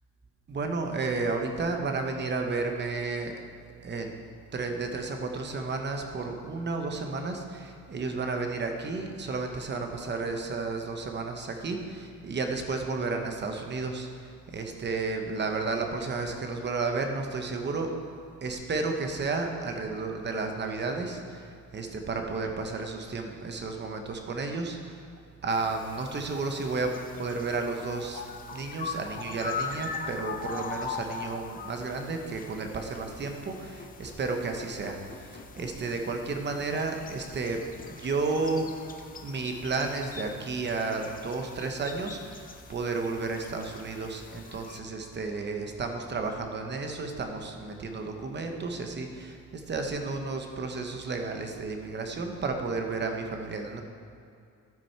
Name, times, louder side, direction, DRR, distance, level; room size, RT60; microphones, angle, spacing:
voice 1, 0.5-3.3 3.8-4.2 4.5-17.9 18.4-25.0 25.4-28.2 28.5-35.0 35.3-37.6 37.9-38.7 39.2-53.8, right 3 dB, 35° right, 4 dB, 0.9 m, -32 dB
sound 1, 25.5-44.8, left 5 dB, 25° left, 0.5 m, -41 dB
14.0 x 6.1 x 4.4 m, 2.5 s
wide cardioid pair, 165°, 32 cm